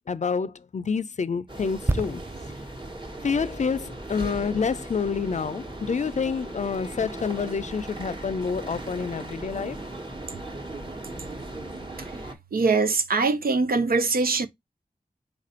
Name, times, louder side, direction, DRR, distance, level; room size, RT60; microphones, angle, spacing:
voice 1, 0.1-2.2 3.2-9.8, left 5 dB, 55° left, 0.4 m, -28 dB
sound 1, 1.5-12.3, right 2 dB, 35° right, 1.2 m, -38 dB
sound 2, 1.9-5.5 5.8-6.0, right 2 dB, 15° right, 0.3 m, -33 dB
voice 2, 12.5-14.5, right 4 dB, 90° right, 0.5 m, -23 dB
4.3 x 2.5 x 4.2 m
wide cardioid pair, 45°, 15 cm